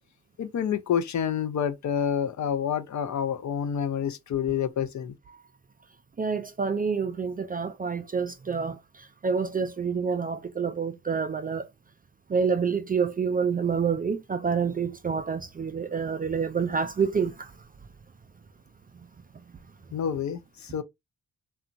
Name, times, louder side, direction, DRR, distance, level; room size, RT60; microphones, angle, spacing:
voice 1, 0.4-5.1 19.9-20.8, left 8 dB, 50° left, 0.5 m, -28 dB
voice 2, 6.2-11.7 12.3-17.5, right 5 dB, 25° right, 0.3 m, -28 dB
2.8 x 2.3 x 2.6 m
supercardioid pair, 45°, 37 cm